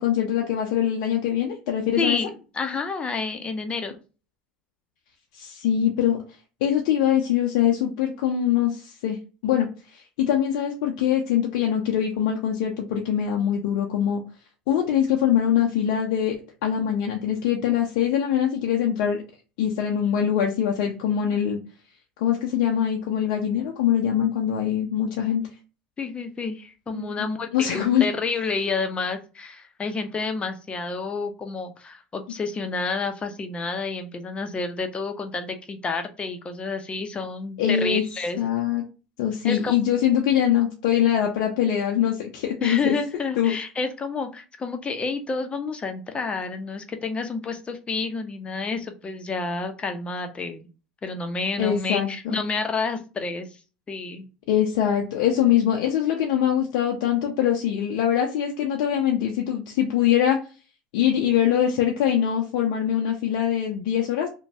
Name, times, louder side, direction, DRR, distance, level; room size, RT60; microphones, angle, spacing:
voice 1, 0.0-2.2 5.3-6.2 6.6-9.2 9.4-14.2 14.7-16.3 16.6-19.2 19.6-21.6 22.2-25.4 26.9-27.1 27.5-28.0 37.6-38.0 38.4-38.8 39.2-42.9 43.4-43.5 51.6-52.4 54.5-60.4 60.9-64.3, left 9 dB, 75° left, 1 dB, 0.5 m, -23 dB
voice 2, 2.0-4.0 26.0-38.4 39.4-39.9 42.6-50.7 51.0-53.6 53.9-54.3, left 4 dB, 25° left, 6 dB, 0.6 m, -29 dB
3.0 x 2.2 x 2.7 m, 0.34 s
hypercardioid pair, 85°, 4 cm